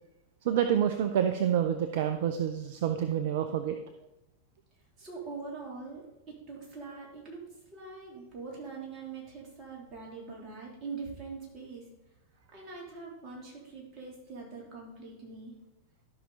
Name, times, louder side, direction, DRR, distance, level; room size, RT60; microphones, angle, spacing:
voice 1, 0.4-3.8, right 9 dB, 55° right, 8 dB, 0.6 m, -28 dB
voice 2, 5.0-6.0 6.5-7.4 7.7-11.8 12.5-15.5, right 4 dB, 30° right, -2 dB, 3.3 m, -43 dB
13.0 x 5.9 x 4.1 m, 0.91 s
figure-of-eight pair, 90°, 0 cm